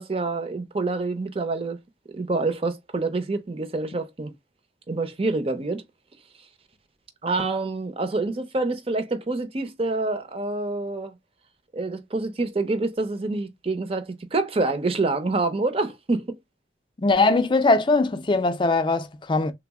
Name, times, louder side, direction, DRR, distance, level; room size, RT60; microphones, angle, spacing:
voice 1, 0.0-1.8 2.1-4.3 4.9-5.8 7.2-11.1 11.7-16.4, right 3 dB, 35° right, 0.6 m, -27 dB
voice 2, 17.0-19.5, left 3 dB, 25° left, 0.5 m, -21 dB
3.4 x 2.0 x 3.4 m
head